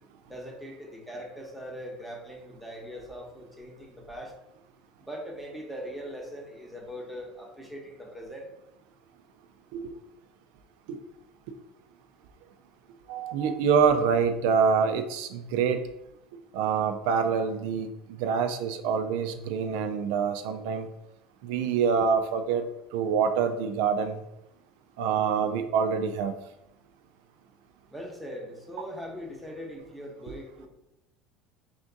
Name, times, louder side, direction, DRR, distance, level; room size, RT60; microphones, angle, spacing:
voice 1, 0.3-4.3 5.0-8.5 27.9-30.7, equal, ahead, -1 dB, 0.8 m, -41 dB
voice 2, 13.1-15.8 16.5-17.9 18.2-20.9 21.4-24.2 25.0-26.3, right 6 dB, 80° right, 7 dB, 0.3 m, -26 dB
3.4 x 2.5 x 3.8 m, 0.88 s
cardioid pair, 140°, 0 cm